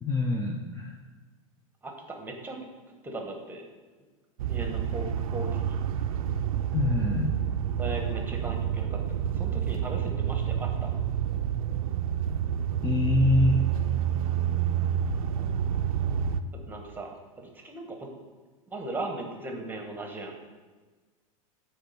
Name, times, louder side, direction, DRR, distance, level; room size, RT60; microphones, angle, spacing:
voice 1, 0.0-0.9 6.7-7.3 12.8-13.6, left 2 dB, 15° left, 1 dB, 0.7 m, -25 dB
voice 2, 1.8-2.6 3.0-3.7 4.5-5.8 7.8-9.0 9.3-10.9 16.7-18.1 18.7-20.4, right 2 dB, 10° right, 2 dB, 1.2 m, -38 dB
sound 1, 4.4-16.4, right 9 dB, 75° right, 0.4 m, -28 dB
8.1 x 3.5 x 5.3 m, 1.3 s
hypercardioid pair, 100°, 18 cm